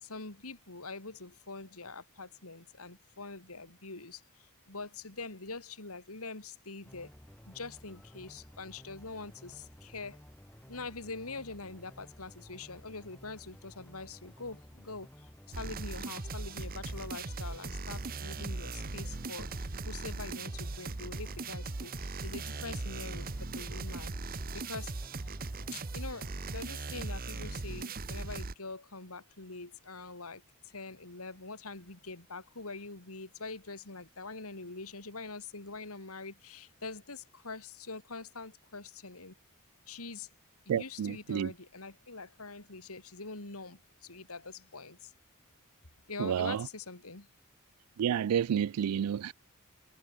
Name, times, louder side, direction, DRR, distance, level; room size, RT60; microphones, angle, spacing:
voice 1, 0.0-7.1 7.5-10.2 10.7-24.1 24.5-25.0 25.7-39.3 39.9-40.3 40.6-45.1 46.1-47.3, left 3 dB, 80° left, 3.2 m, -44 dB
sound 1, 6.8-26.6, equal, 10° left, 2.0 m, -54 dB
sound 2, 15.5-28.5, right 3 dB, 40° right, 1.0 m, -39 dB
voice 2, 40.7-41.5 46.2-46.7 48.0-49.3, right 8 dB, 85° right, 0.3 m, -30 dB
head